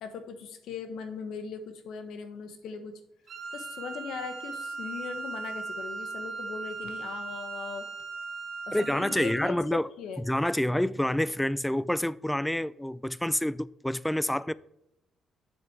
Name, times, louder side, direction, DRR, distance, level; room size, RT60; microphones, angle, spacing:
voice 1, 0.0-2.9 3.5-7.9 8.7-10.2, left 6 dB, 80° left, 1.2 m, -39 dB
Wind instrument woodwind instrument, 3.3-9.6, right 4 dB, 60° right, 1.4 m, -38 dB
voice 2, 8.7-9.9 10.2-14.5, left 1 dB, 5° left, 0.3 m, -28 dB
7.9 x 6.3 x 4.6 m
cardioid pair, 90°, 0 cm